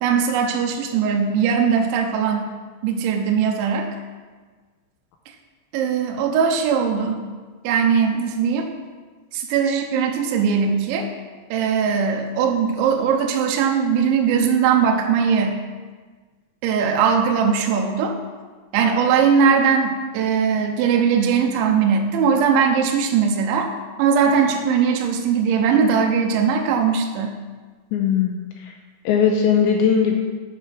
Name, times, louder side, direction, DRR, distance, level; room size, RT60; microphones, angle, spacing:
voice 1, 0.0-2.5 2.8-3.9 5.7-7.3 7.6-8.7 9.3-11.1 11.5-15.6 16.6-18.2 18.7-23.7 24.0-27.3, right 6 dB, 80° right, 2 dB, 3.0 m, -20 dB
voice 2, 27.9-28.7 29.1-30.2, left 7 dB, 85° left, 2 dB, 2.7 m, -19 dB
9.8 x 4.7 x 5.9 m, 1.4 s
omnidirectional pair, 5.6 m